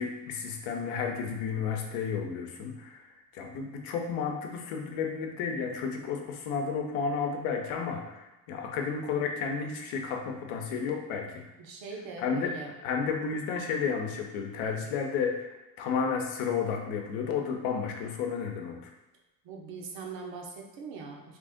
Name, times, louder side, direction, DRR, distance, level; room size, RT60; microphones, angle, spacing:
voice 1, 0.0-3.0 3.3-11.4 12.2-12.5 12.8-18.9, left 6 dB, 75° left, 3 dB, 0.8 m, -32 dB
voice 2, 11.6-12.7 19.4-21.4, right 4 dB, 65° right, 0 dB, 0.9 m, -41 dB
3.2 x 2.5 x 3.5 m, 0.99 s
supercardioid pair, 95°, 48 cm